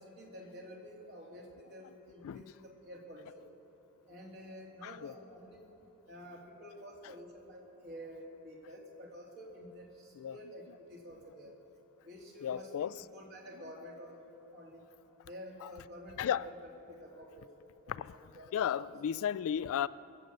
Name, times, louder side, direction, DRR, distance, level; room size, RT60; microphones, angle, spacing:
voice 1, 0.0-3.4 4.1-5.6 6.1-11.5 12.0-14.2 14.5-14.8 15.2-17.5 17.9-18.5 18.8-18.9, equal, 50° right, 2.8 m, -50 dB
voice 2, 4.8-5.1 10.2-10.4 12.4-12.9 16.2-16.4 17.9-18.1 18.5-19.9, left 9 dB, 65° left, 0.3 m, -34 dB
21.5 x 7.8 x 6.7 m
head